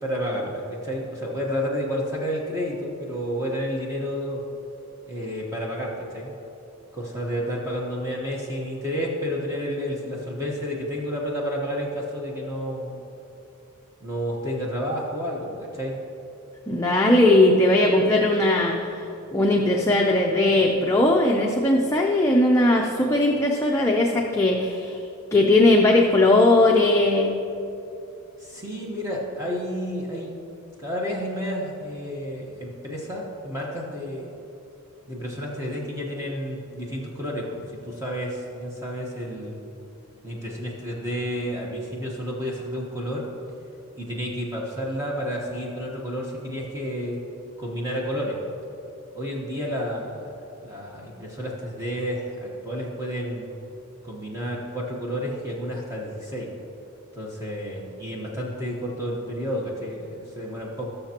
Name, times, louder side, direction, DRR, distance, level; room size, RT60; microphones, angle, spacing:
voice 1, 0.0-4.4 5.1-6.3 6.9-13.0 14.0-16.0 28.4-30.3 30.8-34.3 35.1-39.6 40.2-43.2 44.0-47.2 47.6-48.4 49.1-50.3 50.5-53.5 54.0-56.5 57.2-60.8, equal, 15° right, -3 dB, 1.1 m, -30 dB
voice 2, 16.7-19.0 19.3-25.0 25.3-27.4, left 2 dB, 15° left, -1 dB, 0.6 m, -19 dB
19.5 x 6.6 x 2.9 m, 2.9 s
head